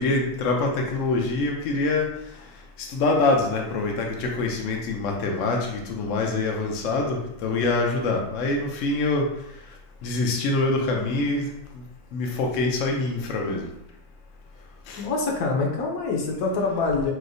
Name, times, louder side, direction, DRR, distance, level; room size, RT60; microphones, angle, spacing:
voice 1, 0.0-2.1 2.8-9.3 10.0-11.5 12.1-13.7 14.9-15.0, left 3 dB, 90° left, 1 dB, 0.6 m, -25 dB
voice 2, 15.0-17.1, left 3 dB, 70° left, 0 dB, 1.0 m, -25 dB
4.4 x 2.0 x 2.6 m, 0.80 s
omnidirectional pair, 2.0 m